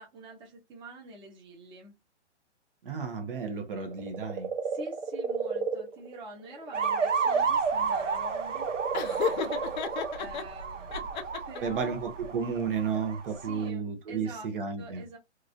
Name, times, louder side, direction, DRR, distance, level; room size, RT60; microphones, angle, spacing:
voice 1, 0.0-1.9 4.6-11.1 11.5-12.0 13.3-14.5 14.8-15.2, right 1 dB, 15° right, 0.8 m, -46 dB
voice 2, 2.8-4.5 11.6-15.0, right 6 dB, 50° right, 0.9 m, -32 dB
sound 1, 3.9-7.5 7.7-10.3 11.4-11.5, right 5 dB, 65° right, 1.2 m, -34 dB
sound 2, 6.7-13.7, right 5 dB, 90° right, 0.8 m, -32 dB
Laughter, 8.9-10.4 10.9-11.8, left 7 dB, 40° left, 0.6 m, -33 dB
3.0 x 2.5 x 2.5 m
hypercardioid pair, 135°, 36 cm